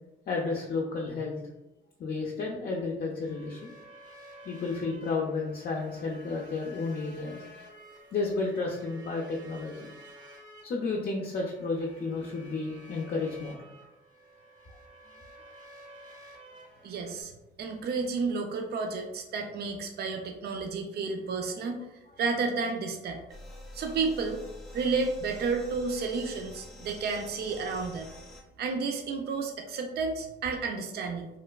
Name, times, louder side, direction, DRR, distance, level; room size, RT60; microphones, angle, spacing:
voice 1, 0.3-1.4 2.0-3.7 4.5-7.4 8.1-9.9 10.6-13.6, left 3 dB, 50° left, -2 dB, 0.5 m, -32 dB
sound 1, 3.2-17.2, equal, 40° right, 0.8 m, -52 dB
voice 2, 16.8-17.3 17.6-21.8 22.2-23.2 23.7-24.4 24.7-28.1 28.6-31.3, right 4 dB, 55° right, 4 dB, 0.4 m, -31 dB
sound 2, 23.3-28.4, left 1 dB, 5° left, 0.6 m, -47 dB
3.1 x 2.1 x 2.2 m, 0.94 s
cardioid pair, 90°, 20 cm